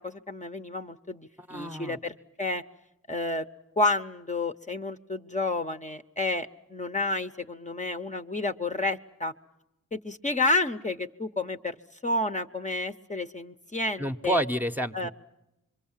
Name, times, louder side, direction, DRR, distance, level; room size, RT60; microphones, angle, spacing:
voice 1, 0.0-2.6 3.1-3.5 3.8-9.3 9.9-11.7 12.0-14.4 14.9-15.1, left 2 dB, 25° left, 6 dB, 0.8 m, -30 dB
voice 2, 1.4-2.0 14.0-14.9, right 1 dB, 5° right, 6 dB, 0.9 m, -29 dB
26.5 x 23.0 x 7.3 m, 0.90 s
cardioid pair, 65°, 31 cm